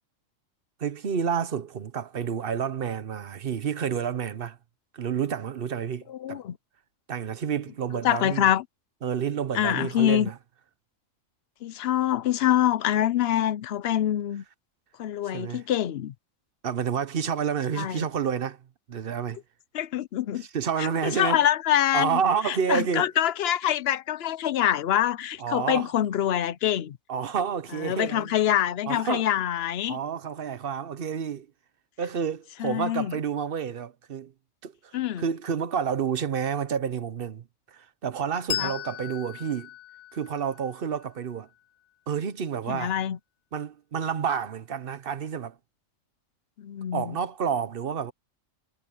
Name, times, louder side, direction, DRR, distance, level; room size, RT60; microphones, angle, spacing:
voice 1, 0.8-4.6 4.9-6.4 7.1-8.5 9.0-10.4 15.3-15.6 16.6-18.6 18.9-19.4 20.5-21.5 21.9-23.1 25.4-25.9 27.1-28.3 28.9-29.3 29.9-31.5 32.0-34.3 34.6-39.7 40.1-41.5 42.1-42.9 43.5-45.6 46.9-48.1, right 7 dB, 50° right, 1.0 m, -29 dB
voice 2, 6.1-6.6 8.0-8.6 9.5-10.3 11.6-14.4 15.0-16.1 17.8-18.0 19.7-20.5 20.8-22.2 22.4-27.0 27.8-30.0 32.6-33.2 34.9-35.2 38.6-38.7 42.7-43.2 46.6-47.2, left 11 dB, 60° left, 0.8 m, -25 dB
Bell, 38.5-41.6, left 10 dB, 85° left, 1.3 m, -37 dB
omnidirectional pair, 1.4 m